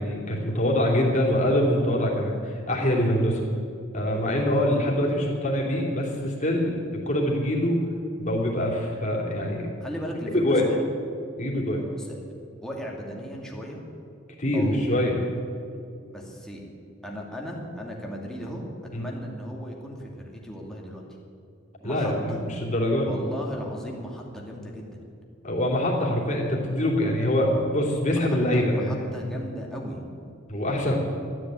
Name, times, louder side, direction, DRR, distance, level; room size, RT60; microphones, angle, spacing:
voice 1, 0.0-3.4 3.9-6.8 7.0-7.8 8.2-9.7 10.3-10.6 11.4-11.8 14.4-15.2 18.9-19.1 21.8-23.1 25.4-28.9 30.5-31.0, left 1 dB, 40° left, -2 dB, 3.1 m, -24 dB
voice 2, 9.8-10.8 12.0-12.2 12.6-13.8 14.5-14.8 16.1-16.6 17.0-18.7 19.0-21.0 21.8-22.5 23.0-25.0 28.1-30.0 30.8-31.0, equal, 5° left, -2 dB, 2.3 m, -36 dB
13.0 x 9.6 x 9.1 m, 2.5 s
head